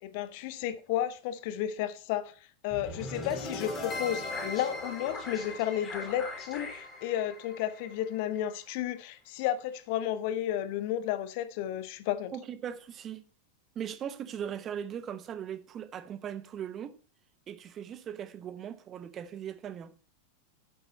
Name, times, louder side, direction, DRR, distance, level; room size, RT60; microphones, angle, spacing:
voice 1, 0.0-2.3 2.6-12.3, left 11 dB, 45° left, 0.8 m, -32 dB
sound 1, 2.7-8.8, left 2 dB, 20° left, 3.8 m, -39 dB
voice 2, 12.3-13.3 13.8-17.0 17.5-19.9, right 9 dB, 30° right, 0.7 m, -39 dB
8.0 x 7.6 x 4.1 m
figure-of-eight pair, 90°, 0 cm